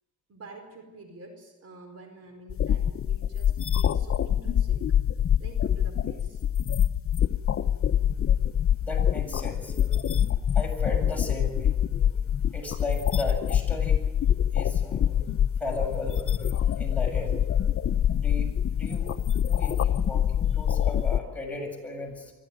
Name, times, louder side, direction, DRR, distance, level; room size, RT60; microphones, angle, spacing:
voice 1, 0.3-4.8 5.4-6.4, right 2 dB, 55° right, 5 dB, 4.7 m, -48 dB
sound 1, 2.5-21.2, left 9 dB, 45° left, 1.0 m, -25 dB
voice 2, 8.8-12.2 12.5-14.0 14.5-15.3 15.6-18.5 18.7-19.1 19.5-22.3, left 2 dB, 5° left, 0 dB, 7.3 m, -36 dB
25.0 x 15.0 x 9.4 m, 1.2 s
cardioid pair, 90°, 30 cm